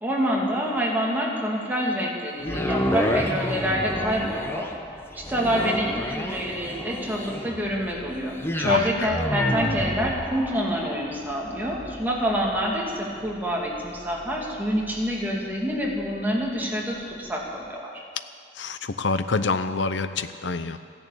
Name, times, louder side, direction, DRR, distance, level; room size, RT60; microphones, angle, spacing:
voice 1, 0.0-4.7 5.1-18.0, equal, 10° right, -3 dB, 2.5 m, -27 dB
sound 1, 2.4-16.6 17.1-17.2, equal, 15° left, 1.0 m, -31 dB
voice 2, 18.6-20.8, left 3 dB, 80° left, 11 dB, 0.8 m, -26 dB
14.5 x 11.0 x 8.5 m, 2.2 s
head